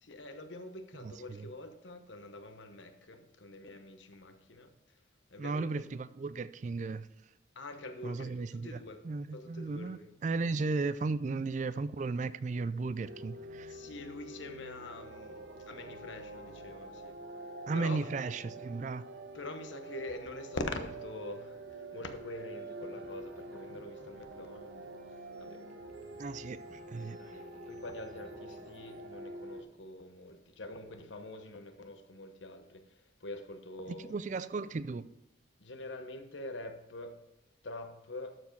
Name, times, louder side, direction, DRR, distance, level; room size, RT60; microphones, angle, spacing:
voice 1, 0.0-4.7 5.3-5.8 7.5-9.0 9.3-10.1 13.6-17.2 17.7-18.0 19.3-24.9 25.4-25.7 27.0-34.1 35.6-37.2 37.6-38.4, left 2 dB, 80° left, 1.0 m, -45 dB
voice 2, 1.0-1.5 5.4-7.1 8.0-13.7 17.7-19.0 26.2-27.2 33.9-35.1, right 3 dB, 40° right, 0.3 m, -35 dB
sound 1, 13.0-29.6, right 1 dB, 70° right, 1.1 m, -47 dB
sound 2, 22.5-29.0, equal, 5° left, 1.1 m, -62 dB
12.5 x 4.6 x 4.6 m
head